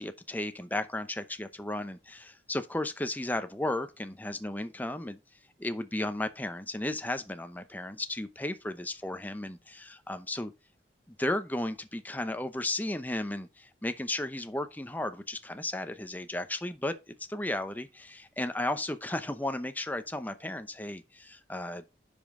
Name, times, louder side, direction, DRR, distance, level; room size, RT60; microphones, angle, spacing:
voice 1, 0.0-5.2 5.6-10.5 11.1-16.9 17.3-21.9, left 1 dB, 10° left, 0.7 m, -34 dB
10.0 x 5.3 x 3.7 m
head